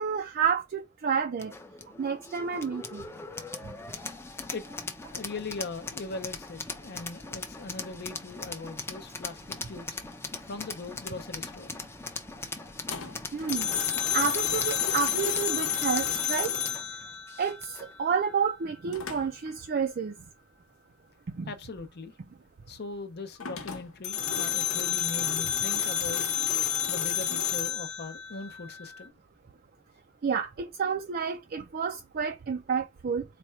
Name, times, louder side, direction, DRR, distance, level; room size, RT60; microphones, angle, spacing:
voice 1, 0.0-1.5 2.0-3.0 13.3-13.7 14.1-16.5 16.9-17.0 17.4-20.1 21.3-21.5 30.2-33.2, right 6 dB, 45° right, 0.4 m, -30 dB
sound 1, 1.4-17.9, left 3 dB, 10° left, 0.5 m, -40 dB
voice 2, 5.1-9.9 10.4-11.7 21.5-22.1 22.7-26.3 26.9-29.1, left 3 dB, 50° left, 0.7 m, -40 dB
sound 2, 12.9-17.9 18.9-19.5 23.4-28.9, left 9 dB, 75° left, 1.0 m, -30 dB
4.2 x 2.2 x 4.4 m
head